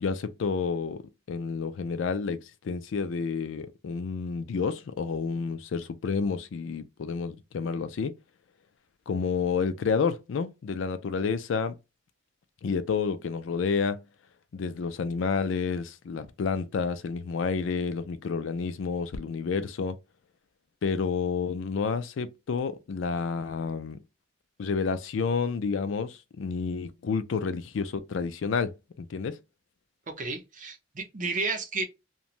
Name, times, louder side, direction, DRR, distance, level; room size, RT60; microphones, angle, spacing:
voice 1, 0.0-8.1 9.1-11.8 12.6-14.0 14.5-20.0 20.8-24.0 24.6-29.4, left 5 dB, 75° left, 0.4 m, -30 dB
voice 2, 30.1-31.8, right 3 dB, 40° right, 0.7 m, -32 dB
3.0 x 2.2 x 2.5 m
head